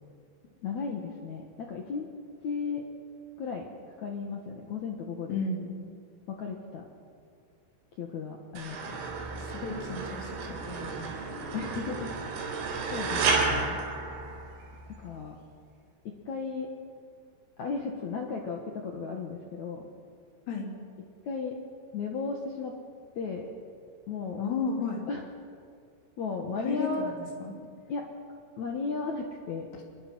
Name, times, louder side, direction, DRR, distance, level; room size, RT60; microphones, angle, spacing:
voice 1, 0.6-2.1 2.4-2.8 3.4-3.7 4.0-5.4 6.3-6.8 8.0-9.0 11.5-12.2 12.9-13.8 15.0-15.4 16.0-16.7 17.6-19.8 21.2-21.6 21.9-22.8 23.2-23.5 24.1-24.4 25.1-25.3 26.2-27.1 27.9-28.1 28.6-29.7, left 5 dB, 65° left, 1 dB, 1.8 m, -35 dB
voice 2, 5.3-5.7 9.4-11.1 20.5-20.7 24.4-25.0 26.6-27.5, left 4 dB, 85° left, 1 dB, 5.6 m, -33 dB
sound 1, 8.6-14.8, right 4 dB, 70° right, 5.3 m, -32 dB
24.0 x 21.5 x 6.2 m, 2.2 s
omnidirectional pair, 5.7 m